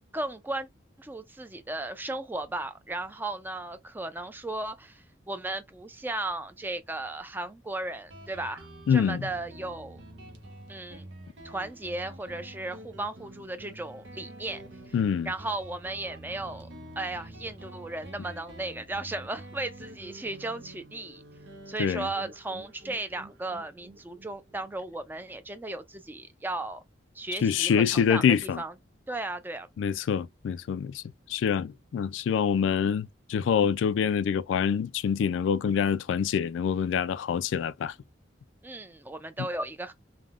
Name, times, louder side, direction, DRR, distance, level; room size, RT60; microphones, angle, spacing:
voice 1, 0.1-0.7 1.0-10.0 10.7-11.1 11.4-14.6 14.9-15.0 15.3-16.7 17.0-21.2 21.7-26.8 27.1-28.7 29.1-29.7 38.6-39.9, right 2 dB, 10° right, 0.4 m, -35 dB
Guitar, 8.1-25.3, right 1 dB, 80° right, 0.8 m, -47 dB
voice 2, 8.9-9.3 14.9-15.3 21.8-22.1 27.4-28.6 29.8-31.0 31.3-37.9, left 7 dB, 90° left, 0.3 m, -26 dB
3.4 x 2.2 x 2.3 m
head